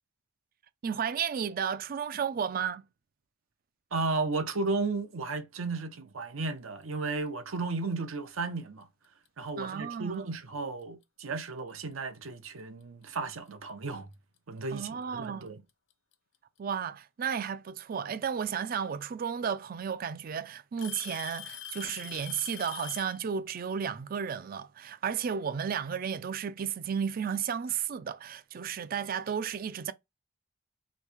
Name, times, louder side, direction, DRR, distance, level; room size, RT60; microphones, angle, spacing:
voice 1, 0.8-2.8 9.6-10.3 14.7-15.5 16.6-29.9, right 7 dB, 45° right, 0.3 m, -33 dB
voice 2, 3.9-8.9 9.4-14.1 14.5-15.6, right 3 dB, 80° right, 0.7 m, -34 dB
Alarm / Tick-tock, 9.3-9.5 10.4-10.5 11.3-11.4 13.0-13.1 14.4-14.5 15.7-16.1 17.9-18.0 19.2-19.3 19.7-20.1 20.8-23.2, left 10 dB, 60° left, 0.6 m, -43 dB
3.1 x 2.6 x 3.4 m
head